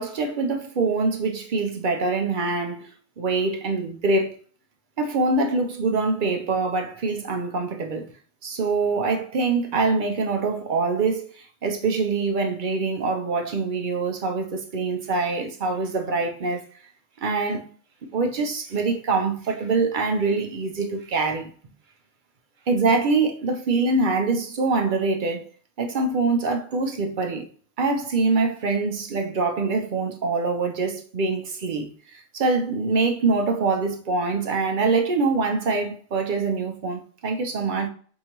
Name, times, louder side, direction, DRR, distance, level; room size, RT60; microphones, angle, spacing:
voice 1, 0.0-2.9 3.2-4.4 5.0-8.1 8.4-16.7 17.2-17.7 18.1-21.5 22.7-25.5 25.8-27.4 27.8-37.9, right 3 dB, 55° right, 0.6 m, -24 dB
4.7 x 2.6 x 2.9 m
omnidirectional pair, 1.1 m